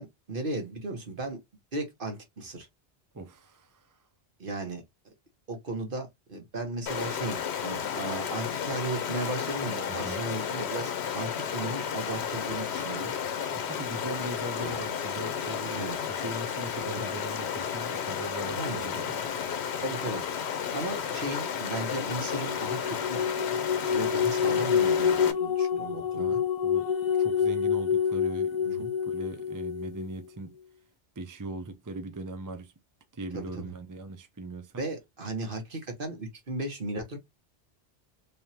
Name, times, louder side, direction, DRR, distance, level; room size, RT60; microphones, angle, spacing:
voice 1, 0.0-1.4 1.7-2.7 4.4-5.1 5.5-13.1 14.6-14.8 15.6-16.0 18.6-18.8 19.8-20.2 20.7-23.2 23.9-26.4 28.6-28.9 33.3-33.7 34.8-37.2, right 2 dB, 50° right, 1.5 m, -36 dB
voice 2, 3.1-4.0 9.9-10.3 13.5-19.3 25.9-30.6 31.2-32.7 33.1-34.8, right 2 dB, 25° right, 0.5 m, -40 dB
Stream, 6.9-25.3, left 8 dB, 70° left, 1.0 m, -33 dB
sound 1, 22.2-30.1, left 7 dB, 55° left, 0.5 m, -27 dB
3.5 x 3.4 x 2.8 m
omnidirectional pair, 1.1 m